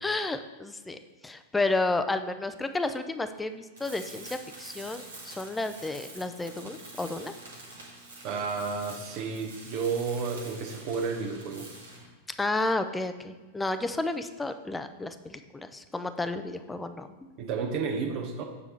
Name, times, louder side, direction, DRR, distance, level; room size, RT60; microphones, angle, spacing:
voice 1, 0.0-7.3 12.4-17.1, left 2 dB, 10° left, 9 dB, 0.5 m, -31 dB
Tools, 3.7-12.1, right 2 dB, 70° right, 1.8 m, -46 dB
voice 2, 8.2-11.7 17.4-18.4, right 5 dB, 40° right, 4 dB, 1.1 m, -31 dB
8.1 x 5.8 x 3.3 m, 1.3 s
figure-of-eight pair, 90°, 0 cm